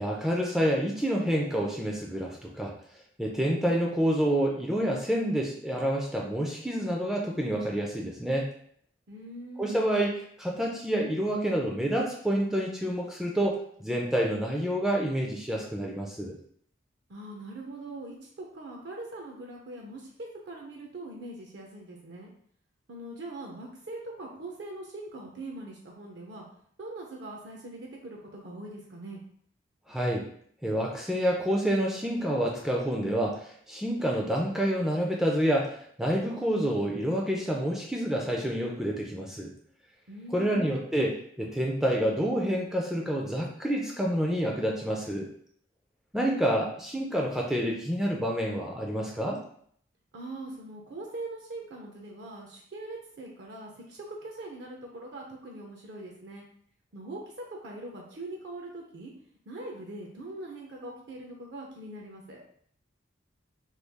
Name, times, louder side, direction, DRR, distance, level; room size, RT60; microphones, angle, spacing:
voice 1, 0.0-2.7 3.2-8.5 9.6-16.4 29.9-30.2 30.6-39.5 40.3-45.3 46.1-49.4, equal, 5° right, -1 dB, 0.3 m, -28 dB
voice 2, 9.1-9.8 17.1-22.3 22.9-26.5 26.8-29.2 40.1-40.8 50.1-56.4 56.9-57.2 57.5-59.1 59.5-62.4, right 2 dB, 65° right, 0 dB, 0.5 m, -42 dB
3.1 x 2.3 x 3.4 m, 0.63 s
head